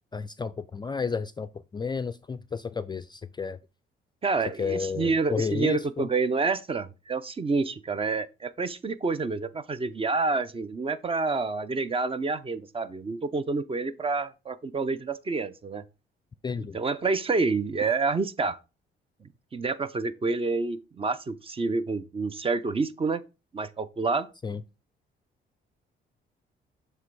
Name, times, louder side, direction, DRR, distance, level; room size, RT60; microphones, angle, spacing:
voice 1, 0.1-3.6 4.6-6.1 16.4-16.8 24.4-24.6, left 5 dB, 20° left, 0.3 m, -32 dB
voice 2, 4.2-15.8 16.7-18.6 19.5-23.2 23.5-24.3, right 4 dB, 30° right, 0.6 m, -28 dB
7.3 x 3.3 x 4.6 m
cardioid pair, 90°, 20 cm